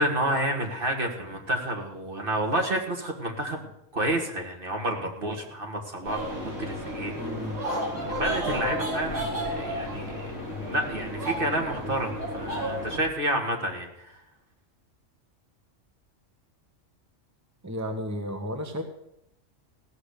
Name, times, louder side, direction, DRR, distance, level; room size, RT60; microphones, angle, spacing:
voice 1, 0.0-7.1 8.1-10.1 10.7-14.1, right 1 dB, 45° right, 2 dB, 2.1 m, -29 dB
sound 1, 6.0-13.0, equal, 75° right, 4.8 m, -32 dB
voice 2, 7.2-7.6 17.6-18.8, equal, 15° right, 5 dB, 1.1 m, -33 dB
16.0 x 6.5 x 8.4 m, 0.83 s
omnidirectional pair, 1.3 m